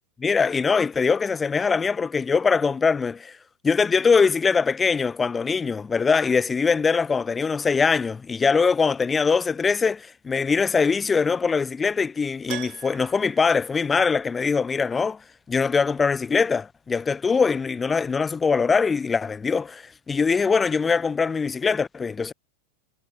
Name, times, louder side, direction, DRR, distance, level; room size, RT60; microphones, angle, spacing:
voice 1, 0.2-3.4 3.6-15.2 15.5-22.3, left 5 dB, 15° left, 0.4 m, -22 dB
Keyboard (musical), 12.5-14.5 14.8-14.9 17.6-17.7 17.9-18.0, right 23 dB, 40° right, 5.1 m, -41 dB
figure-of-eight pair, 90°, 0 cm